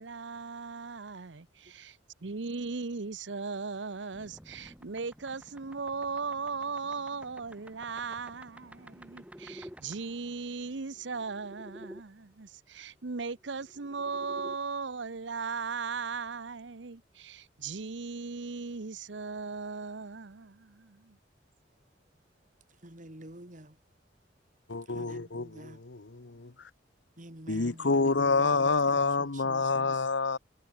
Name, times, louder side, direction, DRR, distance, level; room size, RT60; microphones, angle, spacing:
voice 1, 0.0-21.2, right 4 dB, 85° right, 0.9 m, -38 dB
sound 1, 4.1-12.0 13.3-14.6, equal, 5° right, 7.1 m, -51 dB
voice 2, 22.7-23.8 24.9-25.8 27.2-29.9, right 1 dB, 45° right, 3.4 m, -49 dB
voice 3, 24.7-26.5 27.5-30.4, left 4 dB, 85° left, 1.1 m, -28 dB
head